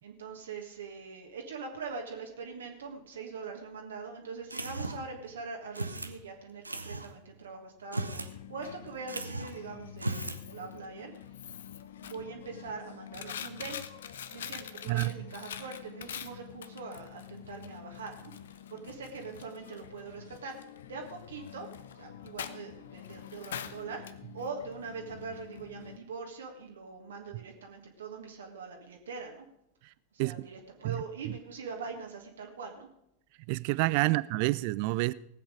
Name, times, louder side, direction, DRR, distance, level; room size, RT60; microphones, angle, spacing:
voice 1, 0.0-11.1 12.0-13.9 14.3-18.3 18.7-24.0 24.3-29.5 30.1-32.9 34.0-34.1, right 4 dB, 65° right, 1.7 m, -42 dB
sound 1, 4.5-5.2 5.7-6.2 6.6-7.1 7.8-8.3 8.6-8.7 9.1-9.6 9.9-10.4, right 2 dB, 85° right, 0.8 m, -36 dB
Coin (dropping), 8.2-26.0, left 9 dB, 60° left, 0.7 m, -45 dB
voice 2, 33.5-35.1, right 21 dB, 45° right, 0.4 m, -28 dB
18.5 x 8.0 x 4.9 m
figure-of-eight pair, 90°, 0 cm